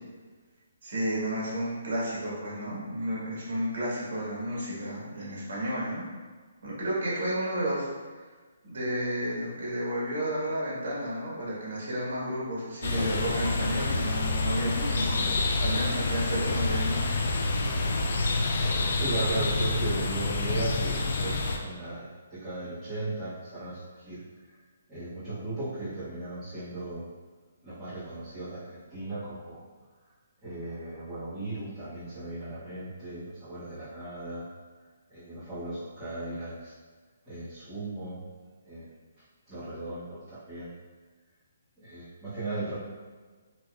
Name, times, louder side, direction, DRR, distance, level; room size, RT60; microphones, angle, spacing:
voice 1, 0.8-6.0 6.6-7.9 8.1-8.2 8.6-15.2 15.6-17.1, equal, 55° right, -6 dB, 1.4 m, -32 dB
sound 1, 12.8-21.6, left 3 dB, 55° left, 0.4 m, -28 dB
voice 2, 18.9-24.2 24.9-27.1 27.6-29.6 30.4-34.5 35.1-36.7 37.3-38.2 38.6-38.9 39.5-40.7 41.8-42.8, right 2 dB, 5° right, -19 dB, 1.4 m, -36 dB
4.0 x 2.9 x 2.4 m, 1.4 s
hypercardioid pair, 165°, 0 cm